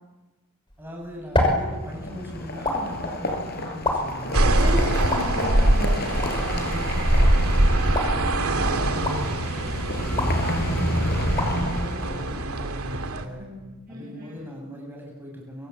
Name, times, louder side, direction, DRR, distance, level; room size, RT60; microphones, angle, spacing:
sound 1, 0.7-12.9, left 1 dB, 20° left, 6.0 m, -32 dB
voice 1, 0.8-4.5 6.2-13.5 13.9-15.7, equal, 10° right, -1 dB, 7.5 m, -39 dB
sound 2, 1.7-12.6, left 1 dB, 45° left, 5.4 m, -30 dB
sound 3, 4.3-13.2, right 1 dB, 80° right, 2.5 m, -23 dB
voice 2, 4.4-6.0 8.6-8.8 13.4-14.4, equal, 40° right, -2 dB, 6.7 m, -34 dB
26.5 x 25.5 x 8.4 m, 1.1 s
head